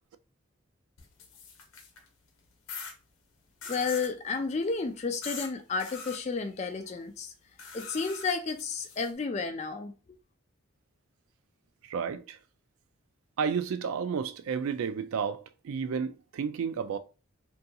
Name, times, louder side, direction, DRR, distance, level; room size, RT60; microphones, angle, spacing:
sound 1, 1.0-2.1 2.7-2.9 3.6-4.1 5.2-5.5 5.8-6.2 7.6-9.1, left 5 dB, 80° left, 0.7 m, -42 dB
voice 1, 3.7-7.3 7.7-9.9, left 4 dB, 30° left, 0.3 m, -32 dB
voice 2, 11.9-12.4 13.4-17.0, right 6 dB, 85° right, 0.3 m, -31 dB
2.7 x 2.6 x 2.3 m
head